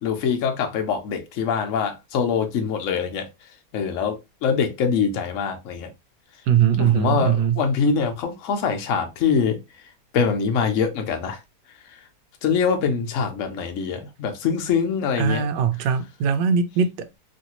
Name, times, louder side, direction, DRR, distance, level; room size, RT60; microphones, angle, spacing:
voice 1, 0.0-3.3 3.7-5.9 6.8-9.6 10.1-11.4 12.4-15.4, left 6 dB, 60° left, 0.9 m, -24 dB
voice 2, 6.5-7.6 15.2-17.1, right 7 dB, 85° right, 1.2 m, -21 dB
3.1 x 2.6 x 2.8 m
omnidirectional pair, 1.8 m